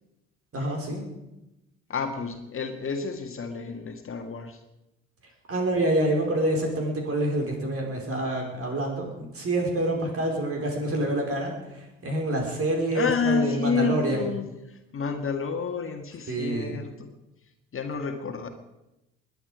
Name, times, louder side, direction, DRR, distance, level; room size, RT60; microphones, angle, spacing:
voice 1, 0.5-1.0 5.5-14.2 16.3-16.8, right 1 dB, 45° right, 1 dB, 4.9 m, -27 dB
voice 2, 1.9-4.6 12.9-17.1 17.7-18.5, left 5 dB, 40° left, 5 dB, 1.9 m, -29 dB
21.0 x 10.0 x 5.0 m, 0.94 s
hypercardioid pair, 50°, 33 cm